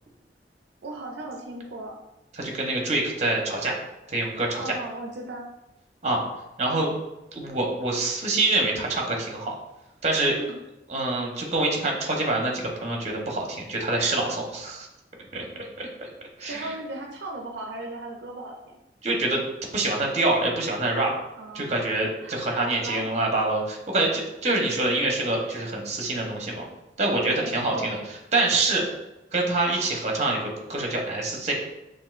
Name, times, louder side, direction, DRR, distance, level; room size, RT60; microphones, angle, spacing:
voice 1, 0.8-2.0 4.6-5.5 10.3-10.6 16.5-18.8 21.4-21.8 22.2-23.1 27.2-28.0, right 2 dB, 80° right, 2 dB, 0.4 m, -36 dB
voice 2, 2.4-3.7 4.1-4.7 6.0-6.2 6.6-6.9 7.3-9.6 10.0-10.3 10.9-14.9 15.3-16.1 16.4-16.7 19.0-19.4 19.7-21.1 21.5-26.6 27.0-28.0 28.3-28.8 29.3-31.5, right 2 dB, 40° right, 0 dB, 0.8 m, -26 dB
6.0 x 2.5 x 2.4 m, 0.93 s
head